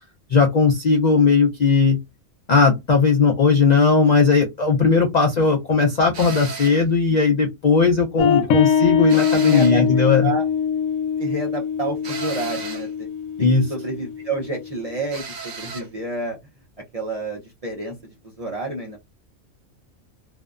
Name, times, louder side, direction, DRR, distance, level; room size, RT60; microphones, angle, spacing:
voice 1, 0.3-2.0 2.5-10.3 13.4-13.7, left 4 dB, 65° left, 0.4 m, -17 dB
sound 1, 6.1-6.9 9.1-9.9 12.0-12.9 15.1-15.9, right 4 dB, 60° right, 0.9 m, -33 dB
sound 2, 8.2-15.1, left 7 dB, 90° left, 1.0 m, -23 dB
voice 2, 9.4-9.9 10.2-10.4 11.2-13.1 13.4-16.4 16.9-19.0, right 2 dB, 40° right, 0.5 m, -29 dB
2.6 x 2.2 x 2.3 m
omnidirectional pair, 1.4 m